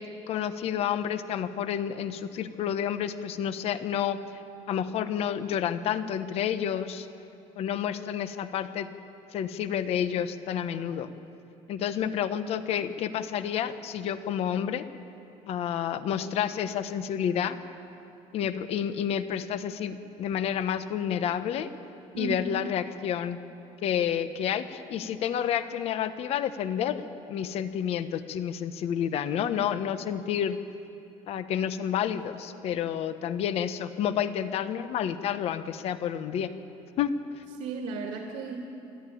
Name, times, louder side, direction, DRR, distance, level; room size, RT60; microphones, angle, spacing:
voice 1, 0.0-7.1 7.6-8.9 9.3-11.1 11.7-14.9 15.5-17.6 18.3-21.7 22.2-23.4 23.8-27.0 27.3-30.6 31.3-36.5 37.0-37.1, left 9 dB, 55° left, 11 dB, 1.1 m, -30 dB
voice 2, 22.1-22.5 37.6-38.6, right 4 dB, 75° right, 1 dB, 2.3 m, -34 dB
27.5 x 13.5 x 9.2 m, 2.8 s
cardioid pair, 155°, 13 cm